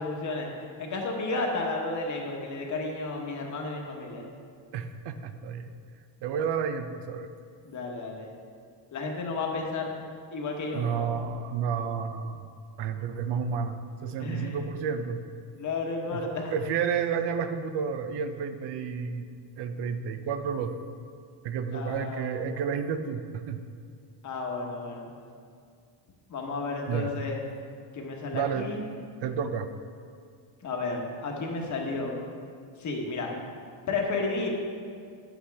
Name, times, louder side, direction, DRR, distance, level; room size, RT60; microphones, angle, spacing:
voice 1, 0.0-4.2 7.6-8.3 8.9-9.9 10.3-11.1 14.2-14.6 15.6-16.5 21.7-22.3 24.2-25.1 26.3-27.5 27.9-28.9 30.6-32.2 32.8-33.3 33.9-34.5, left 3 dB, 40° left, 1 dB, 1.2 m, -32 dB
voice 2, 4.7-5.7 6.2-7.3 10.7-12.4 12.8-15.2 16.1-16.2 16.5-19.3 19.6-20.8 21.4-23.6 26.9-27.1 28.3-28.7 29.2-29.7, right 6 dB, 65° right, 9 dB, 0.7 m, -31 dB
9.8 x 8.1 x 3.4 m, 2.2 s
cardioid pair, 155°, 44 cm